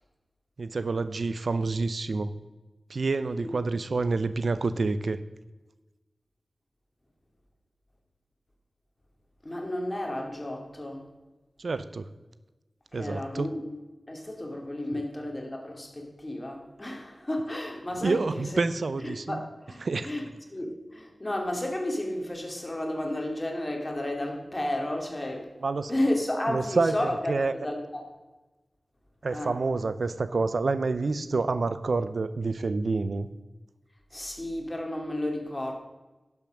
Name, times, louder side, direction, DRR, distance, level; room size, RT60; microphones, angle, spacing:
voice 1, 0.6-2.3 2.9-5.2 11.6-12.1 12.9-13.5 14.9-15.0 18.0-19.4 19.8-20.1 25.6-25.9 26.5-27.5 29.2-33.3, right 3 dB, 75° right, 13 dB, 0.6 m, -28 dB
voice 2, 3.4-3.7 9.4-11.1 12.9-13.7 14.1-18.6 19.0-25.5 25.9-28.1 29.3-29.6 34.1-35.7, left 1 dB, 25° left, 2 dB, 2.4 m, -32 dB
11.5 x 7.2 x 6.3 m, 1.1 s
wide cardioid pair, 70°, 0 cm